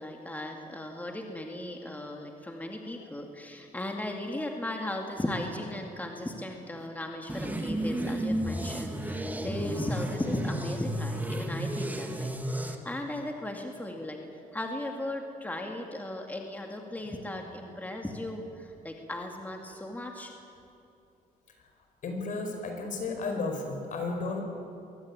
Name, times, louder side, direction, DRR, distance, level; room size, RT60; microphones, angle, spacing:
voice 1, 0.0-14.2 14.5-20.3, left 1 dB, 10° left, 2 dB, 2.3 m, -36 dB
sound 1, 7.3-12.8, right 1 dB, 10° right, 2.1 m, -32 dB
voice 2, 22.0-24.4, left 3 dB, 60° left, 4 dB, 5.1 m, -34 dB
23.0 x 18.0 x 8.8 m, 2.8 s
cardioid pair, 105°, 15 cm